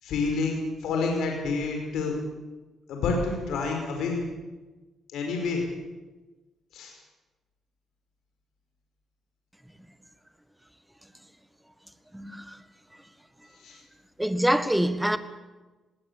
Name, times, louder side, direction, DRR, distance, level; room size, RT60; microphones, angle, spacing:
voice 1, 0.0-2.1 2.9-4.2 5.1-5.6 6.7-7.0 13.5-13.8, left 4 dB, 80° left, 5.4 m, -28 dB
voice 2, 12.1-12.6 14.2-15.2, right 1 dB, 5° right, 1.7 m, -25 dB
20.0 x 18.0 x 8.4 m
cardioid pair, 90°, 0 cm